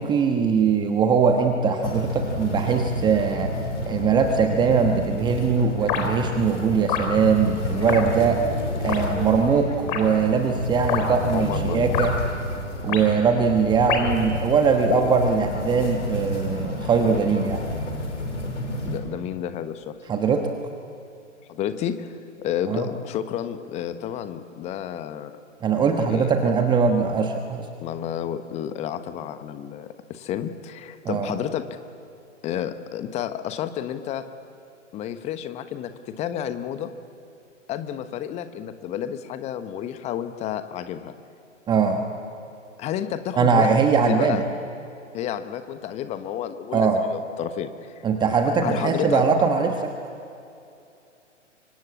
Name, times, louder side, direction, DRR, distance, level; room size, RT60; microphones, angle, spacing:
voice 1, 0.0-3.5 3.9-8.5 8.8-12.2 12.8-17.6 20.1-20.5 22.7-22.9 25.6-27.7 31.0-31.3 41.7-42.0 43.4-44.4 46.7-47.0 48.0-49.9, right 5 dB, 10° right, 4 dB, 1.2 m, -21 dB
sound 1, 1.8-19.0, left 1 dB, 70° left, 5.7 m, -30 dB
sound 2, 5.9-6.1 6.9-7.1 7.9-8.0 8.9-9.1 9.9-10.0 10.9-11.0 11.9-12.1 12.9-13.0 13.9-14.2 14.9-15.1, left 8 dB, 40° left, 4.0 m, -25 dB
voice 2, 11.3-12.0 12.8-13.0 18.8-19.9 21.5-25.3 26.0-26.3 27.8-31.8 32.4-34.3 34.9-35.9 36.2-36.9 37.7-41.1 42.8-43.8 44.1-44.4 45.1-48.0 48.6-49.2, left 10 dB, 20° left, 10 dB, 1.2 m, -31 dB
26.5 x 24.5 x 8.6 m, 2.6 s
figure-of-eight pair, 120°, 37 cm